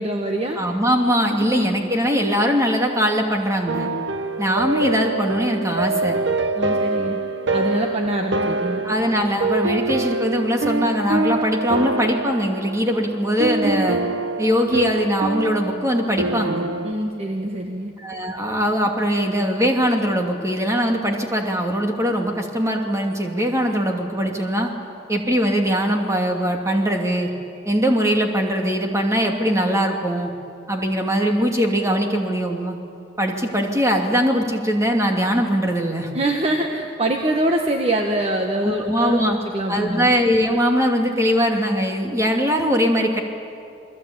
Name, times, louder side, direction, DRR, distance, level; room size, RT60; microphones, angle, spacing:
voice 1, 0.0-0.6 1.4-1.7 6.6-7.2 7.5-8.8 16.8-17.9 36.1-40.1, right 1 dB, 35° right, 3 dB, 1.5 m, -24 dB
voice 2, 0.6-3.9 4.4-6.2 8.8-14.0 14.4-16.6 18.0-24.7 25.1-27.3 27.7-30.3 30.7-32.7 33.2-36.1 38.6-39.4 39.7-43.2, equal, 15° right, 2 dB, 2.6 m, -21 dB
sound 1, 3.7-16.9, right 2 dB, 75° right, 1.1 m, -25 dB
29.0 x 21.5 x 8.8 m, 2.5 s
head